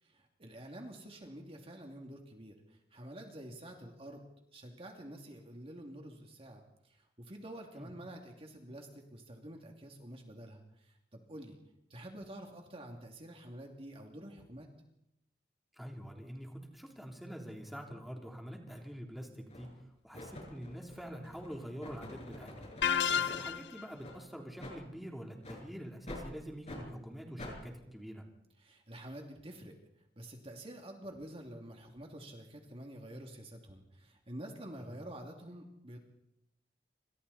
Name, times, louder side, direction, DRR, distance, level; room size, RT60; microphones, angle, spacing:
voice 1, 0.0-4.3 4.5-11.6 11.9-14.7 28.6-29.7 30.2-36.0, right 1 dB, 35° right, 2 dB, 2.7 m, -48 dB
voice 2, 15.7-19.7 20.0-22.8 23.1-28.3 34.9-35.0, equal, ahead, 0 dB, 3.4 m, -46 dB
sound 1, 18.7-18.8 19.5-19.8 20.1-23.5 24.0-24.2 24.6-24.8 25.4-25.6 26.1-26.3 26.6-26.8 27.4-27.6, left 1 dB, 40° left, 7.5 m, -47 dB
sound 2, 22.8-23.9, left 7 dB, 70° left, 0.8 m, -30 dB
28.5 x 26.5 x 4.3 m, 0.82 s
head